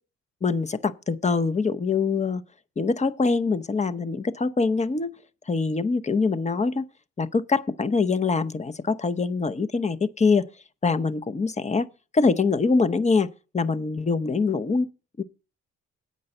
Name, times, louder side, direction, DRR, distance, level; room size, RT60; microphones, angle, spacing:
voice 1, 0.4-2.4 2.8-5.1 5.5-6.9 7.2-10.5 10.8-11.9 12.1-13.3 13.5-14.9 15.2-15.3, left 4 dB, 25° left, 0.8 m, -24 dB
8.6 x 5.3 x 7.8 m
cardioid pair, 90°, 30 cm